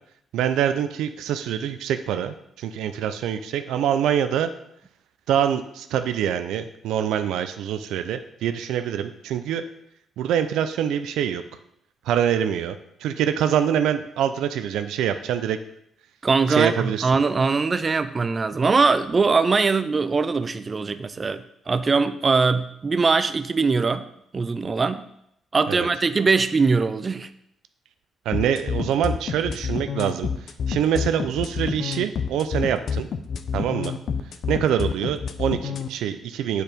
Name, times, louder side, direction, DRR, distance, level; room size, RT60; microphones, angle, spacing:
voice 1, 0.3-4.5 5.3-9.6 10.2-11.4 12.1-15.6 16.5-17.1 25.7-25.9 28.3-30.3 30.7-33.1 33.5-33.9 34.5-36.6, right 9 dB, 85° right, 10 dB, 0.5 m, -25 dB
voice 2, 16.2-24.1 24.3-25.1 25.5-27.3, right 4 dB, 30° right, 11 dB, 0.5 m, -21 dB
sound 1, 28.3-35.9, left 6 dB, 60° left, 0.6 m, -28 dB
8.4 x 4.6 x 5.1 m, 0.74 s
cardioid pair, 90°, 0 cm